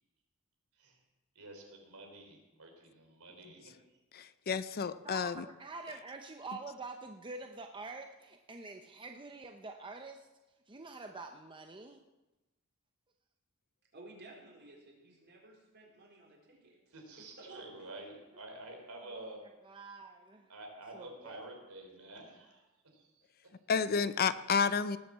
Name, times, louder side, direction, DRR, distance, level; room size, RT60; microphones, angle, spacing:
voice 1, 1.4-3.7 16.5-16.6 16.9-19.4 20.5-22.7 22.9-23.2, right 2 dB, 80° right, 2 dB, 3.8 m, -49 dB
voice 2, 4.1-5.4 23.7-25.0, left 6 dB, 45° left, 14 dB, 0.5 m, -31 dB
voice 3, 5.0-10.3 10.7-12.0 19.0-19.4 19.6-20.5 20.9-21.4, right 3 dB, 20° right, 4 dB, 0.7 m, -46 dB
voice 4, 13.9-16.9 17.4-17.9, right 2 dB, 50° right, -2 dB, 4.3 m, -54 dB
19.0 x 7.5 x 7.4 m, 1.1 s
head